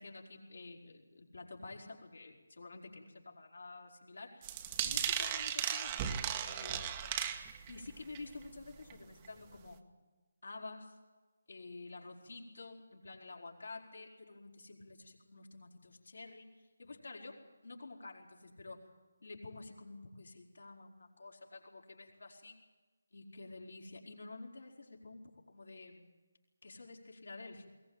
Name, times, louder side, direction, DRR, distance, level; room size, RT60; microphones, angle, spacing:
voice 1, 0.0-4.5 4.8-7.2 7.7-9.8 10.4-11.0 11.5-18.8 19.2-22.6 23.1-26.0 26.6-27.7, left 3 dB, 65° left, 0 dB, 4.8 m, -50 dB
sound 1, 4.4-7.8 8.1-8.5 8.9-9.0 9.2-9.3, right 9 dB, 20° right, 1.3 m, -36 dB
21.5 x 19.5 x 8.9 m, 1.2 s
figure-of-eight pair, 155°, 0 cm